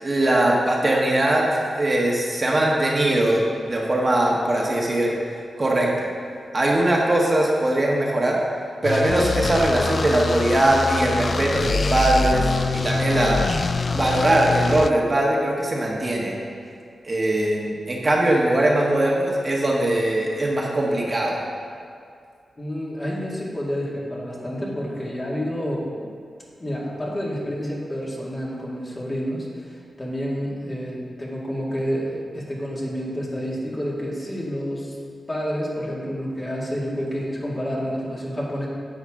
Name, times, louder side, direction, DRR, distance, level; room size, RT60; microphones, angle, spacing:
voice 1, 0.0-5.1 5.6-6.1 6.5-8.4 8.8-13.4 13.9-16.3 17.0-21.4, right 1 dB, 35° right, -3 dB, 1.4 m, -21 dB
sound 1, 8.8-14.9, left 4 dB, 50° left, 0.3 m, -25 dB
voice 2, 22.6-26.0 26.6-35.0 35.3-38.7, equal, 30° left, -5 dB, 2.3 m, -29 dB
10.0 x 7.1 x 3.8 m, 2.3 s
cardioid pair, 70°, 0 cm